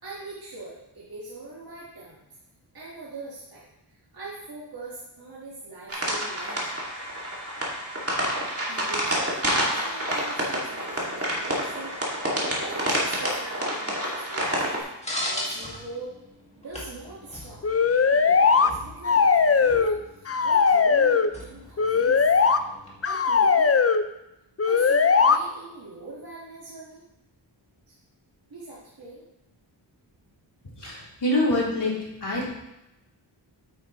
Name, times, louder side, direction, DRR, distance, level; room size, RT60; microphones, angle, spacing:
voice 1, 0.0-2.2 2.7-6.8 8.5-14.8 15.3-16.2 16.6-17.7 18.1-22.2 23.1-23.7 24.6-27.0 28.5-29.2, right 2 dB, 50° right, -7 dB, 1.9 m, -42 dB
sound 1, 5.9-14.8, equal, 30° right, 2.4 m, -28 dB
sound 2, 15.0-23.0, left 1 dB, 15° left, 2.1 m, -39 dB
sound 3, 17.6-18.7 19.0-20.0 20.3-21.3 21.8-22.6 23.0-24.0 24.6-25.4, left 5 dB, 35° left, 0.5 m, -19 dB
voice 2, 30.8-31.9 32.2-32.5, left 1 dB, 65° left, -6 dB, 3.7 m, -25 dB
8.9 x 8.9 x 3.2 m, 0.90 s
wide cardioid pair, 110°, 45 cm